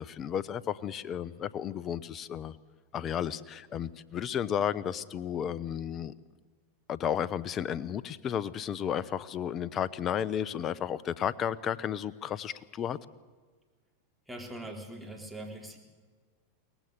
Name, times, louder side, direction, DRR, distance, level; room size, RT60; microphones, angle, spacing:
voice 1, 0.0-2.5 2.9-6.1 6.9-13.0, left 9 dB, 35° left, 19 dB, 0.8 m, -33 dB
voice 2, 14.3-15.8, right 1 dB, ahead, 1 dB, 3.8 m, -42 dB
23.0 x 18.5 x 6.8 m, 1.5 s
hypercardioid pair, 95°, 0 cm